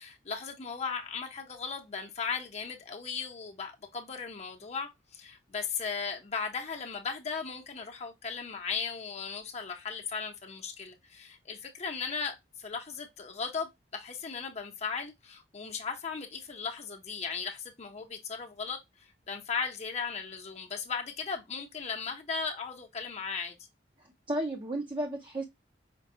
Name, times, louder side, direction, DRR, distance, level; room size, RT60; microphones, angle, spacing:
voice 1, 0.0-23.6, left 5 dB, 40° left, 0.7 m, -37 dB
voice 2, 24.0-25.4, right 1 dB, 30° right, 0.6 m, -34 dB
5.1 x 2.2 x 2.7 m
head